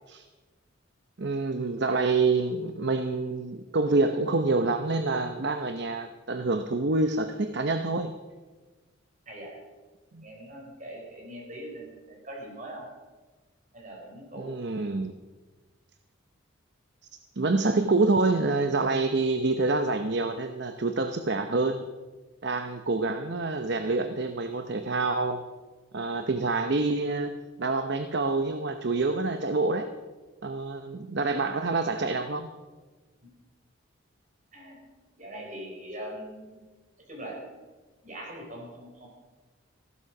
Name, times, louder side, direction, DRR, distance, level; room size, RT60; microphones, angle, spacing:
voice 1, 1.2-8.1 10.1-10.2 14.3-15.1 17.4-21.8 22.4-25.4 25.9-27.3 27.6-29.9 30.4-32.5, right 3 dB, 55° right, 8 dB, 0.8 m, -27 dB
voice 2, 9.3-9.6 10.2-12.9 13.7-14.5 34.5-34.9 35.2-36.6 37.1-37.5 38.0-39.1, right 1 dB, 40° right, -1 dB, 4.4 m, -41 dB
15.0 x 12.5 x 5.9 m, 1.3 s
head